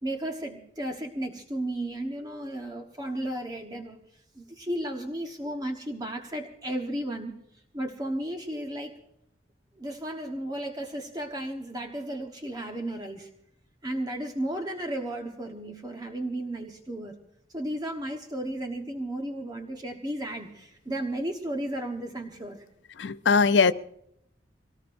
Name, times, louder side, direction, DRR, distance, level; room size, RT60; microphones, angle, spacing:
voice 1, 0.0-4.0 4.3-7.4 7.7-9.0 9.8-13.3 13.8-17.2 17.5-22.6, right 1 dB, 20° right, 3 dB, 1.2 m, -34 dB
voice 2, 23.0-23.7, left 5 dB, 75° left, 13 dB, 0.6 m, -20 dB
24.0 x 18.5 x 2.6 m, 0.75 s
head